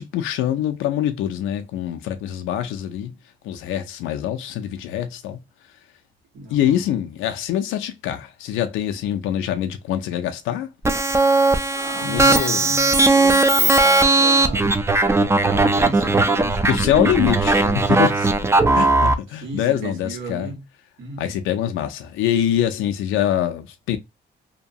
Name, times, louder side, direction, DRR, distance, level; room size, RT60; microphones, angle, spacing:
voice 1, 0.0-3.1 3.4-5.4 6.5-10.7 12.0-12.7 16.6-17.6 17.9-18.3 18.7-20.5 21.2-24.0, left 11 dB, 90° left, 0.4 m, -24 dB
voice 2, 6.3-6.9 11.7-14.7 15.5-16.9 17.4-17.9 19.4-20.6 21.0-21.4, right 3 dB, 75° right, 1.4 m, -34 dB
sound 1, 10.8-19.1, right 2 dB, 15° right, 0.4 m, -17 dB
2.8 x 2.2 x 2.6 m
cardioid pair, 90°, 20 cm